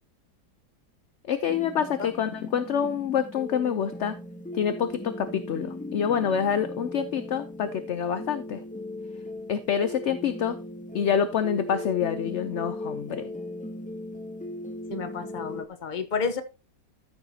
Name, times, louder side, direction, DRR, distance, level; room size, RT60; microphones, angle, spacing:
voice 1, 1.3-4.2 4.6-8.6 9.5-10.6 10.9-13.3, left 8 dB, 60° left, 11 dB, 0.7 m, -27 dB
sound 1, 1.5-15.6, left 1 dB, 10° left, 0.4 m, -38 dB
voice 2, 14.9-16.4, left 5 dB, 35° left, 9 dB, 0.9 m, -31 dB
13.5 x 6.9 x 2.8 m, 0.32 s
omnidirectional pair, 1.8 m